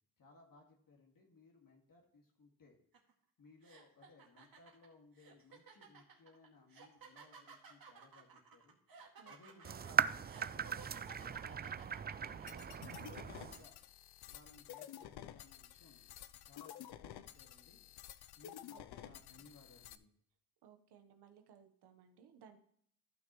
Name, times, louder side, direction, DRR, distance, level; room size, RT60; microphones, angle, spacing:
voice 1, 0.2-2.8 3.4-8.8 9.2-11.7 12.2-13.7 14.3-16.0 16.4-17.8 18.4-20.1, left 3 dB, 60° left, 0 dB, 2.1 m, -63 dB
sound 1, 2.9-3.1 3.6-12.9, right 5 dB, 65° right, 2.2 m, -57 dB
sound 2, 9.6-13.6, right 7 dB, 25° right, 0.4 m, -38 dB
sound 3, 12.5-20.0, left 11 dB, 80° left, 0.6 m, -52 dB
voice 2, 18.7-19.4 20.6-22.6, right 8 dB, 90° right, 7 dB, 1.2 m, -62 dB
14.5 x 6.1 x 3.1 m, 0.65 s
cardioid pair, 75°, 39 cm